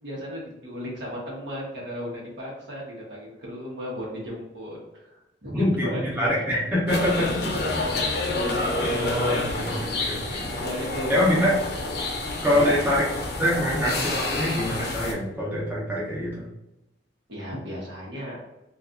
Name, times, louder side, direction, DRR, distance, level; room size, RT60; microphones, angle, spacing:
voice 1, 0.0-6.5 7.1-7.9 8.3-9.9 10.6-11.6 12.5-12.8 17.3-18.4, equal, 80° right, -4 dB, 1.0 m, -35 dB
voice 2, 5.5-7.4 8.8-9.7 10.0-10.4 11.1-11.5 12.4-13.1 13.4-16.5, left 1 dB, 10° right, -7 dB, 0.9 m, -24 dB
sound 1, 6.9-15.1, left 2 dB, 65° left, 0.6 m, -28 dB
2.7 x 2.4 x 2.4 m, 0.92 s
head